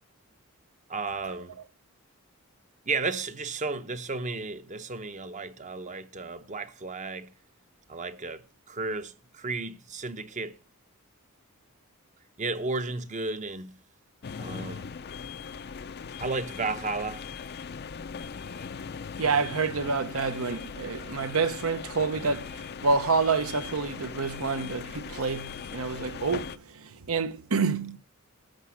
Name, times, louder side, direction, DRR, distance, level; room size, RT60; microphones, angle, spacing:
voice 1, 0.9-1.6 2.9-7.3 7.9-10.6 12.4-13.8 14.4-14.9 16.2-17.2, right 3 dB, 35° right, 0.8 m, -33 dB
sound 1, 14.2-26.6, left 6 dB, 50° left, 0.5 m, -39 dB
voice 2, 19.2-28.0, right 4 dB, 75° right, 0.9 m, -28 dB
13.0 x 7.3 x 6.2 m
head